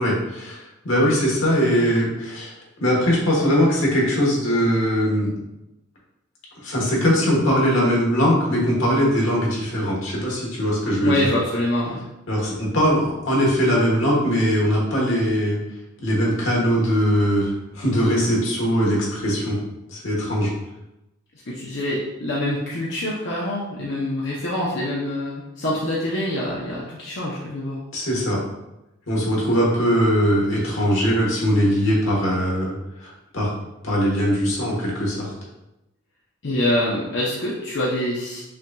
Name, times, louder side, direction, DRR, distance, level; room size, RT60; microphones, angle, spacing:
voice 1, 0.0-2.5 2.8-5.3 6.6-11.1 12.3-15.6 16.0-19.6 19.9-20.5 27.9-28.4 29.1-33.5 33.8-35.3, equal, 85° left, -3 dB, 1.3 m, -21 dB
voice 2, 11.0-12.0 21.5-27.8 36.4-38.4, left 1 dB, 65° left, -6 dB, 0.7 m, -25 dB
5.7 x 2.6 x 2.3 m, 0.92 s
head